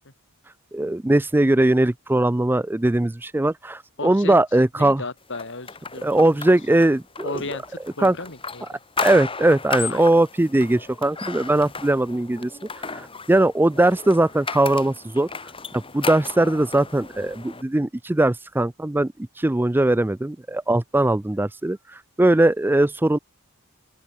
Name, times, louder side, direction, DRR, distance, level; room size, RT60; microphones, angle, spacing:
voice 1, 0.7-5.0 6.0-7.4 8.0-8.1 9.0-12.5 12.8-15.3 15.7-23.2, right 1 dB, 10° right, 0.4 m, -20 dB
voice 2, 4.0-4.3 4.7-6.4 6.7-6.8 7.2-8.8 9.9-10.1 11.6-11.7, left 3 dB, 55° left, 3.3 m, -35 dB
sound 1, 5.3-17.6, left 4 dB, 25° left, 5.6 m, -35 dB
open air
head